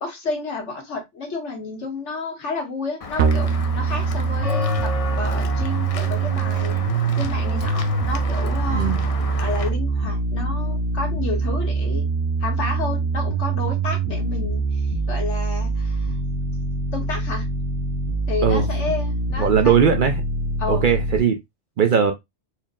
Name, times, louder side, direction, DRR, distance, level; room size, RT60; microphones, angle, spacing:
voice 1, 0.0-6.8 7.2-8.9 9.4-12.1 12.4-16.2 16.9-17.5 18.3-19.7 20.6-20.9, left 3 dB, 80° left, 1.6 m, -31 dB
Walk footsteps / Bell, 3.0-9.7, left 4 dB, 45° left, 0.4 m, -32 dB
sound 1, 3.2-21.2, right 3 dB, 80° right, 0.9 m, -24 dB
voice 2, 8.7-9.0 18.4-18.7 19.4-20.1 20.7-21.4 21.8-22.1, right 7 dB, 55° right, 0.6 m, -18 dB
4.4 x 2.0 x 3.6 m
omnidirectional pair, 1.2 m